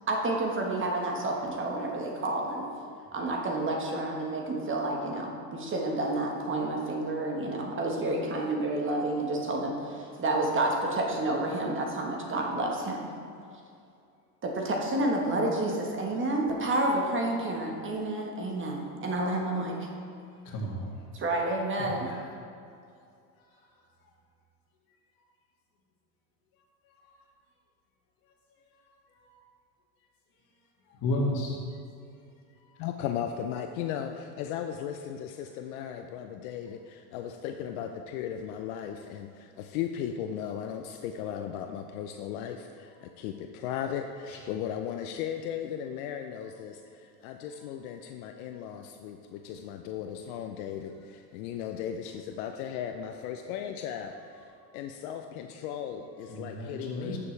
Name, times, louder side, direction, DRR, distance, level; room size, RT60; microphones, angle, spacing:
voice 1, 0.1-2.7 3.1-13.1 14.4-19.9 21.1-22.1, right 2 dB, 25° right, 0 dB, 1.4 m, -29 dB
voice 2, 20.5-20.9 21.8-22.3 31.0-31.6 44.3-44.4 56.3-57.2, left 1 dB, 45° left, -1 dB, 2.2 m, -32 dB
voice 3, 32.8-57.2, left 9 dB, 60° left, 5 dB, 0.7 m, -36 dB
12.0 x 6.9 x 3.3 m, 2.4 s
supercardioid pair, 110°, 48 cm